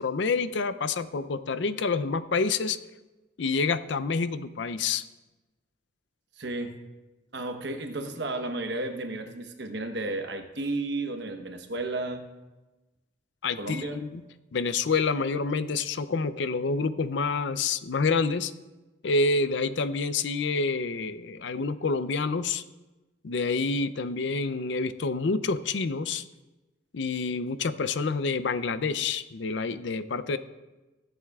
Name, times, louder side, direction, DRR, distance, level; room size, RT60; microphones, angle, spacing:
voice 1, 0.0-2.8 3.4-5.0 13.4-14.2 14.5-18.5 19.0-22.6 23.2-26.2 26.9-30.4, left 4 dB, 75° left, 13 dB, 0.5 m, -28 dB
voice 2, 6.4-6.7 7.3-12.3 13.6-14.0, right 2 dB, 70° right, 6 dB, 1.0 m, -33 dB
21.5 x 7.9 x 2.4 m, 1.1 s
head